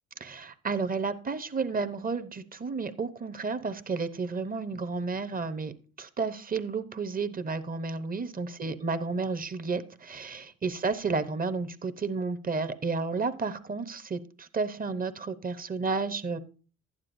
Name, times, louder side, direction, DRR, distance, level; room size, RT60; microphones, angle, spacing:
voice 1, 0.2-16.4, right 4 dB, 30° right, 11 dB, 0.8 m, -32 dB
11.5 x 9.6 x 2.6 m, 0.37 s
cardioid pair, 90°, 30 cm